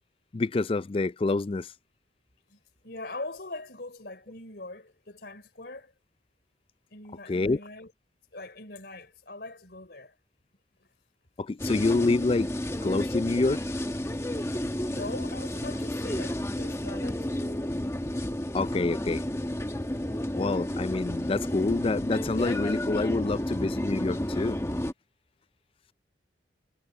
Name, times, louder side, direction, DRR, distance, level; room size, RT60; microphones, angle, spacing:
voice 1, 0.3-1.7 7.3-7.6 11.4-12.5 12.8-13.6 18.5-19.2 20.3-24.6, left 3 dB, 30° left, 0.4 m, -27 dB
voice 2, 2.5-5.9 6.9-7.9 8.3-10.1 14.9-17.6, left 2 dB, 60° left, 3.9 m, -42 dB
sound 1, 11.6-24.9, left 1 dB, 15° left, 1.1 m, -31 dB
head